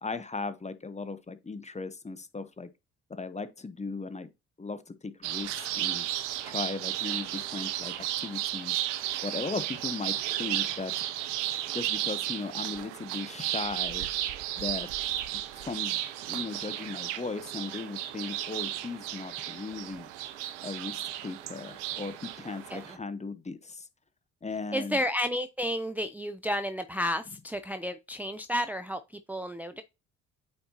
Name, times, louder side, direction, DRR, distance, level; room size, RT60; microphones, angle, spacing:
voice 1, 0.0-2.7 3.1-4.3 4.6-6.1 6.4-8.8 9.2-10.9 11.7-14.1 14.6-14.9 15.3-16.0 16.3-20.1 20.6-23.9 24.4-25.0, left 4 dB, 20° left, 0.9 m, -37 dB
sound 1, 5.2-23.0, right 13 dB, 85° right, 0.7 m, -34 dB
voice 2, 24.7-29.8, equal, 5° right, 0.6 m, -32 dB
8.7 x 4.3 x 2.8 m
hypercardioid pair, 50°, 35 cm